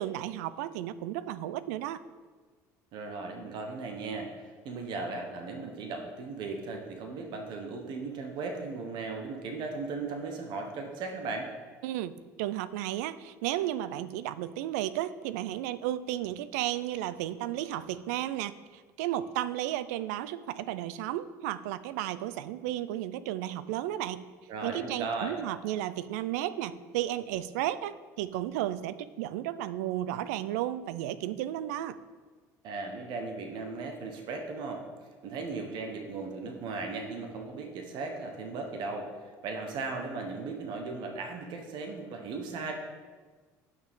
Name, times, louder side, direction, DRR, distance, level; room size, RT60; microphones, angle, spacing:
voice 1, 0.0-2.0 11.8-12.1 12.4-24.3 24.6-32.0, right 13 dB, 85° right, 16 dB, 0.4 m, -33 dB
voice 2, 2.9-4.3 4.6-11.5 24.5-25.4 32.6-34.8 35.2-39.1 39.4-42.7, right 3 dB, 65° right, 3 dB, 1.1 m, -37 dB
9.2 x 6.2 x 3.7 m, 1.4 s
supercardioid pair, 85°, 8 cm